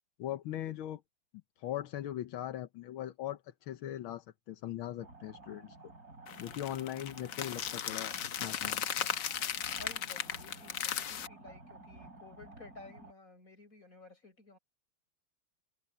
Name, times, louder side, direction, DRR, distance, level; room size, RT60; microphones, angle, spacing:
voice 1, 0.2-1.0 1.6-5.8 6.4-8.1 8.4-8.9, left 12 dB, 80° left, 1.7 m, -40 dB
sound 1, 5.0-13.1, right 3 dB, 45° right, 6.1 m, -53 dB
sound 2, 6.3-11.3, left 10 dB, 65° left, 1.5 m, -37 dB
voice 2, 9.7-14.6, left 3 dB, 40° left, 7.4 m, -54 dB
omnidirectional pair, 2.2 m